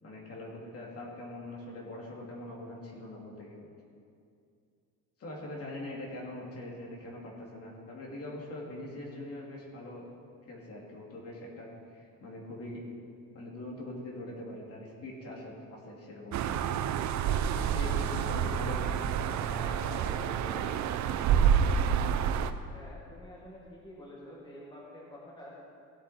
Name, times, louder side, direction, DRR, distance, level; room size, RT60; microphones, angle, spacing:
voice 1, 0.0-3.7 5.2-10.1 10.5-12.9 13.3-16.6 17.6-20.8, left 1 dB, 45° left, -2 dB, 2.5 m, -43 dB
sound 1, 16.3-22.5, right 8 dB, 55° right, 0.6 m, -28 dB
voice 2, 22.7-25.6, left 1 dB, 15° left, -5 dB, 1.9 m, -48 dB
17.0 x 7.9 x 4.3 m, 2.4 s
cardioid pair, 145°, 34 cm